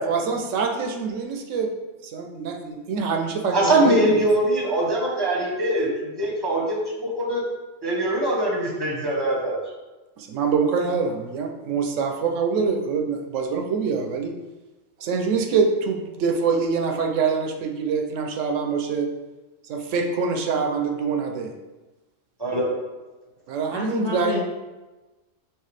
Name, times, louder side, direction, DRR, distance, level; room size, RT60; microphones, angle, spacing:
voice 1, 0.1-1.7 2.0-4.2 10.2-14.3 15.0-19.1 19.7-21.5 23.5-24.4, right 5 dB, 80° right, 3 dB, 0.9 m, -25 dB
voice 2, 3.5-7.4 7.8-9.6 22.4-22.7, right 1 dB, 20° right, -3 dB, 0.9 m, -22 dB
voice 3, 23.7-24.4, left 4 dB, 35° left, -6 dB, 0.4 m, -28 dB
4.6 x 3.1 x 3.2 m, 1.1 s
omnidirectional pair, 1.3 m